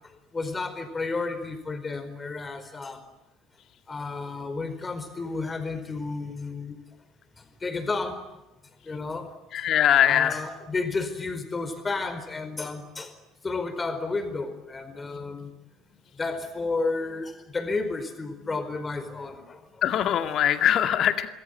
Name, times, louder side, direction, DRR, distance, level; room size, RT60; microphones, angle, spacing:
voice 1, 0.3-3.0 3.9-6.8 7.6-8.2 8.8-9.3 10.0-13.1 13.4-15.5 16.2-19.6, left 3 dB, 20° left, 9 dB, 4.7 m, -32 dB
voice 2, 9.5-10.4 19.8-21.3, left 10 dB, 45° left, 9 dB, 2.1 m, -22 dB
27.0 x 20.5 x 9.9 m, 0.98 s
figure-of-eight pair, 60°, 0 cm